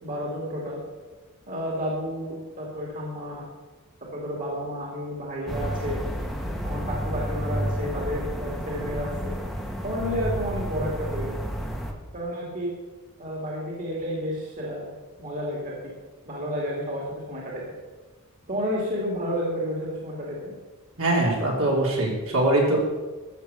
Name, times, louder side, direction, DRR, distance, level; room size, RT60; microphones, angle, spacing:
voice 1, 0.0-0.8 1.5-3.4 4.1-6.0 6.6-9.3 9.8-11.4 12.1-12.7 13.2-14.9 15.2-15.9 16.2-17.6 18.5-20.5, equal, 40° right, -3 dB, 2.6 m, -31 dB
sound 1, 5.5-11.9, equal, ahead, 1.3 m, -31 dB
voice 2, 21.0-22.8, right 2 dB, 70° right, -2 dB, 3.7 m, -22 dB
13.5 x 7.3 x 6.9 m, 1.3 s
head